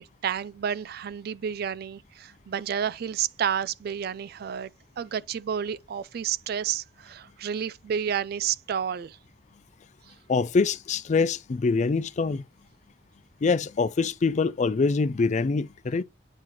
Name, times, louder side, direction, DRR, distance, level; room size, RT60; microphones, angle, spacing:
voice 1, 0.0-4.7 5.0-9.2, right 8 dB, 55° right, 0.3 m, -30 dB
voice 2, 10.3-12.4 13.4-16.0, left 4 dB, 40° left, 0.4 m, -24 dB
8.9 x 3.9 x 2.9 m
head